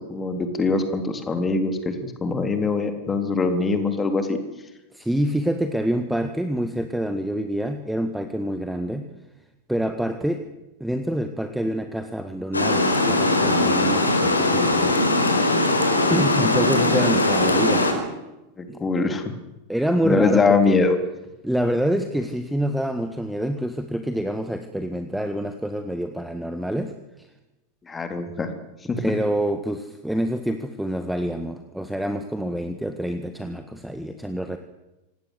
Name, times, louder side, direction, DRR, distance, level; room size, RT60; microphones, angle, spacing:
voice 1, 0.1-1.9 2.2-4.4 18.6-19.2 20.0-21.0 27.9-28.5 28.9-29.0, left 3 dB, 15° left, 7 dB, 3.7 m, -22 dB
voice 2, 4.9-9.1 9.7-10.5 10.8-15.0 16.1-17.8 18.7-18.8 19.7-20.8 21.4-26.9 27.2-27.3 29.0-34.6, equal, ahead, 8 dB, 1.7 m, -26 dB
Water, 12.5-17.9, left 2 dB, 80° left, 4.6 m, -20 dB
26.5 x 19.0 x 8.2 m, 0.99 s
figure-of-eight pair, 90°, 0 cm